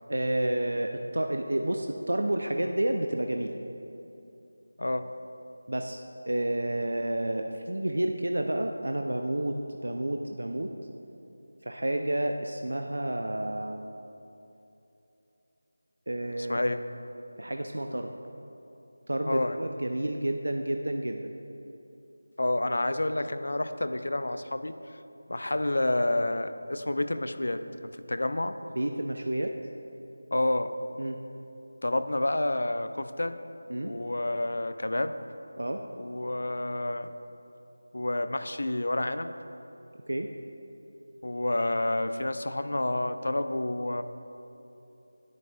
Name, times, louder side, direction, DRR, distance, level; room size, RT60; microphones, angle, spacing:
voice 1, 0.1-3.5 5.7-10.7 11.6-13.9 16.1-16.6 17.4-18.1 19.1-21.3 28.8-29.5 31.0-31.2 33.7-33.9 35.6-35.8 40.1-40.3, right 1 dB, 80° right, 4 dB, 0.4 m, -30 dB
voice 2, 16.5-16.8 19.3-19.6 22.4-25.0 25.3-28.6 30.3-30.7 31.8-33.4 33.8-35.2 36.0-37.1 37.9-39.3 41.2-44.0, left 1 dB, 70° left, 10 dB, 0.4 m, -29 dB
10.5 x 8.3 x 2.3 m, 2.9 s
figure-of-eight pair, 170°, 0 cm